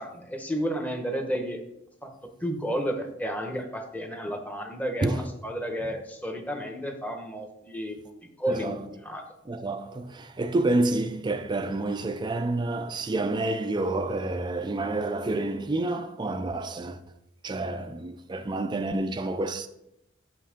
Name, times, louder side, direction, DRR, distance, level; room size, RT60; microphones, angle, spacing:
voice 1, 0.0-1.6 2.0-2.1 2.4-8.0 8.4-8.7 9.0-9.2, equal, 10° left, 0.9 m, -32 dB
voice 2, 8.5-8.8 9.5-17.0 17.4-19.7, right 2 dB, 25° right, 0.3 m, -28 dB
6.4 x 5.5 x 5.1 m
head